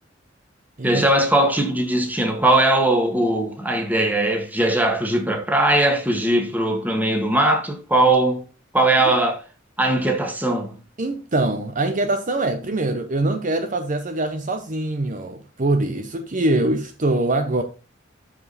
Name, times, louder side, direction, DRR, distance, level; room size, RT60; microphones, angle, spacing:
voice 1, 0.8-8.4 8.7-9.4 9.8-10.8, right 1 dB, 10° right, 1.8 m, -20 dB
voice 2, 11.0-17.6, right 2 dB, 45° right, 0.9 m, -23 dB
12.5 x 5.0 x 4.1 m
head